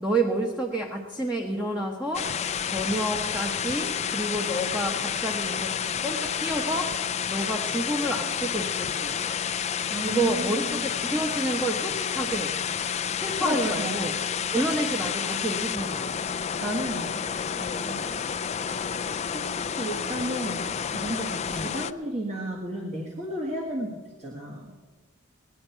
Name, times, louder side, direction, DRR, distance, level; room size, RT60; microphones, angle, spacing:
voice 1, 0.0-2.3 2.6-5.7 6.0-6.9 7.3-9.2 10.0-12.5 13.2-14.1 14.5-16.1 17.9-18.1 21.5-21.7, right 1 dB, 5° right, 0 dB, 1.1 m, -29 dB
sound 1, 2.1-21.9, left 7 dB, 35° left, 0.4 m, -30 dB
voice 2, 9.9-10.8 13.4-14.2 16.6-17.2 17.5-18.2 19.3-24.7, right 1 dB, 35° right, -3 dB, 1.7 m, -33 dB
20.0 x 10.0 x 4.5 m, 1.3 s
head